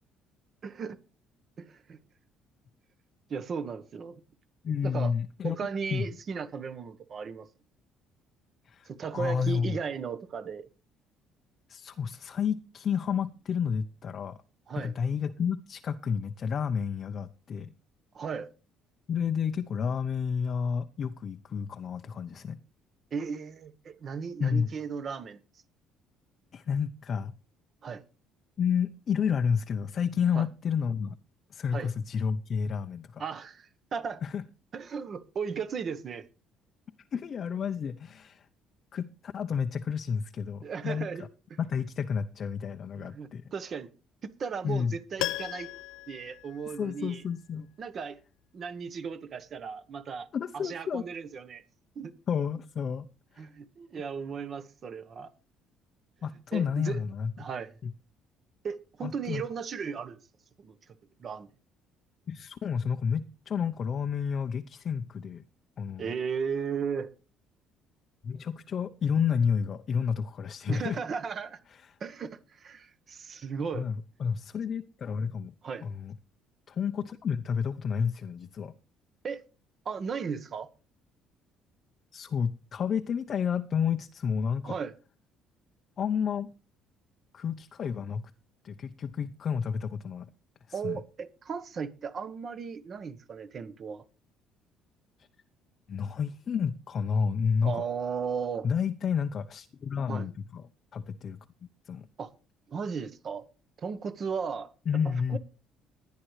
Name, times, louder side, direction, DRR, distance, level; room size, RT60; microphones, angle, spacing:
voice 1, 0.6-1.0 1.6-2.0 3.3-4.2 4.8-5.1 5.4-7.5 8.9-10.7 14.7-14.9 18.1-18.5 23.1-25.4 27.8-28.0 30.3-30.5 31.7-31.9 33.2-34.2 34.7-36.3 40.6-41.6 43.0-43.9 44.4-45.7 46.1-47.2 47.8-48.2 48.5-50.3 50.5-51.6 51.9-52.1 53.4-55.3 56.5-57.0 57.4-57.7 58.6-60.2 60.6-60.8 61.2-61.5 66.0-67.1 70.7-71.6 72.0-73.9 75.6-75.8 79.2-79.4 79.8-80.7 84.6-84.9 90.7-94.0 97.6-98.7 100.1-100.3 102.2-102.3 102.7-103.5 103.8-104.7 105.3-105.4, right 6 dB, 35° right, 1.1 m, -36 dB
voice 2, 4.6-5.6 5.9-6.1 8.7-8.9 9.1-9.8 11.7-14.4 14.7-17.7 19.1-22.6 24.4-24.7 26.5-27.3 28.6-31.2 31.5-33.2 34.2-34.4 37.1-38.4 38.9-41.1 41.6-43.4 44.6-44.9 46.8-47.7 50.3-51.0 52.3-53.1 53.4-53.5 56.2-57.3 57.8-57.9 59.0-59.4 62.3-65.4 65.8-66.1 68.2-71.0 73.7-75.5 75.8-76.1 76.7-78.7 82.1-84.7 86.0-86.5 87.3-88.2 88.6-90.3 90.7-91.0 95.9-97.8 98.6-100.6 100.9-101.4 101.9-102.1 104.9-105.4, left 7 dB, 35° left, 0.7 m, -30 dB
Piano, 45.2-47.3 47.6-47.7, left 16 dB, 85° left, 0.5 m, -37 dB
18.5 x 10.5 x 3.2 m
cardioid pair, 160°, 0 cm